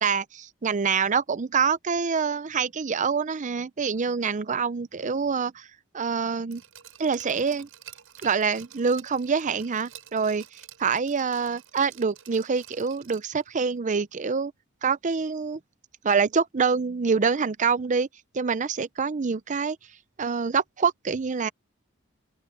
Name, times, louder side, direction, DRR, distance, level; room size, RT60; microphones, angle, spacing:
voice 1, 0.0-5.7 5.9-6.6 7.0-7.7 8.2-10.4 10.8-14.5 14.8-15.6 16.0-18.1 18.3-19.8 20.2-21.5, right 5 dB, 35° right, 0.6 m, -26 dB
Glass, 6.5-13.4 13.8-13.9, right 11 dB, 75° right, 5.5 m, -49 dB
open air
head